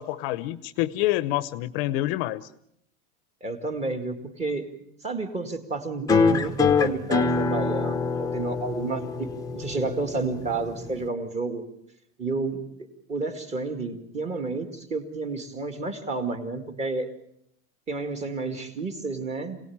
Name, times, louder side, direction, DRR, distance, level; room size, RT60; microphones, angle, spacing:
voice 1, 0.0-2.5, left 15 dB, 55° left, 0.9 m, -27 dB
voice 2, 3.4-4.7 5.0-9.3 9.5-11.7 12.2-12.6 13.1-17.1 17.9-19.6, right 3 dB, 20° right, 2.2 m, -30 dB
sound 1, 6.1-11.1, left 4 dB, 10° left, 1.0 m, -25 dB
26.0 x 18.0 x 8.7 m
supercardioid pair, 165°, 35 cm